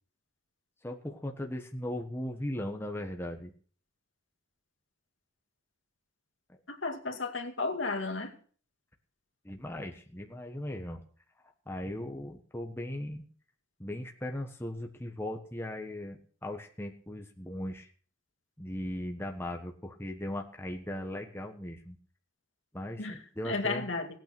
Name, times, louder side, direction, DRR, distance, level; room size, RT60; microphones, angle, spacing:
voice 1, 0.8-3.5 6.5-6.6 9.4-11.0 11.4-13.2 13.8-17.9 18.6-22.0 22.7-23.9, left 1 dB, 10° left, 2 dB, 1.4 m, -38 dB
voice 2, 6.7-8.3 23.0-23.2 23.4-24.2, left 3 dB, 65° left, 4 dB, 2.3 m, -33 dB
17.0 x 9.2 x 6.1 m, 0.44 s
head